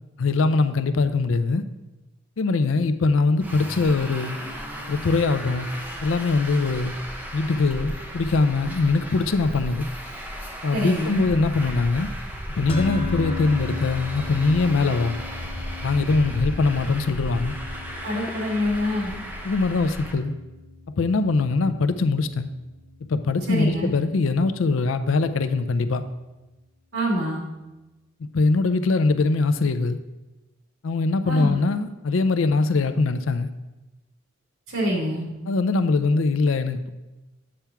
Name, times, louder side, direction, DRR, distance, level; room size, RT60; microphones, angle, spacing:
voice 1, 0.2-1.6 2.4-4.4 4.9-5.7 6.0-6.9 7.3-9.9 10.6-12.1 12.6-15.2 15.8-17.5 19.4-20.3 21.0-22.5 23.1-26.0 28.3-30.0 30.8-33.5 35.5-36.9, left 3 dB, 75° left, 11 dB, 0.5 m, -22 dB
Traffic noise roadway noise, 3.4-20.1, equal, 10° right, 0.8 m, -35 dB
voice 2, 10.7-11.2 18.0-19.1 23.5-23.9 26.9-27.4 31.2-31.6 34.7-35.3, equal, 80° right, -3 dB, 2.1 m, -25 dB
sound 1, 12.7-23.1, left 4 dB, 30° left, 0.8 m, -37 dB
8.6 x 3.5 x 5.8 m, 1.1 s
head